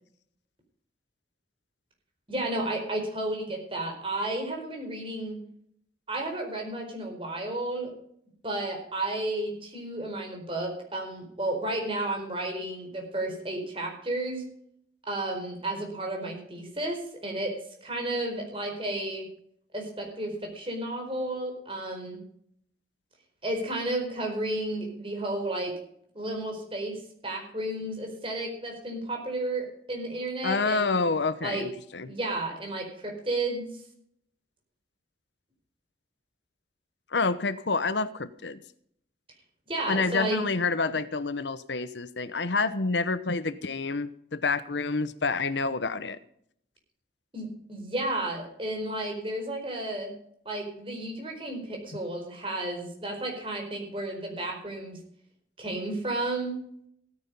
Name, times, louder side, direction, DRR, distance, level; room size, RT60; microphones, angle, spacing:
voice 1, 2.3-5.4 6.1-7.9 8.4-14.4 15.1-17.5 17.8-19.2 19.7-22.2 23.4-25.7 26.1-31.0 31.4-31.6 32.0-33.7 39.7-40.4 47.3-50.1 50.4-55.0 55.6-56.6, right 1 dB, 30° right, 2 dB, 4.6 m, -32 dB
voice 2, 30.4-32.1 37.1-38.6 39.9-46.2, left 4 dB, 85° left, 14 dB, 0.9 m, -28 dB
16.5 x 9.8 x 5.4 m, 0.67 s
head